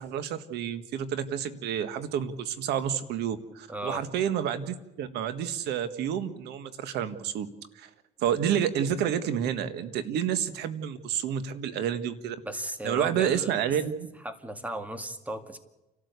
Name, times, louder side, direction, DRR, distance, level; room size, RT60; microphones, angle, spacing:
voice 1, 0.0-7.5 7.7-7.9 8.2-12.4 12.8-14.1, right 9 dB, 80° right, 11 dB, 1.6 m, -29 dB
voice 2, 3.7-4.0 12.4-13.6 14.2-15.6, right 1 dB, 10° right, 8 dB, 2.1 m, -35 dB
29.5 x 13.0 x 8.2 m, 0.99 s
cardioid pair, 110°, 17 cm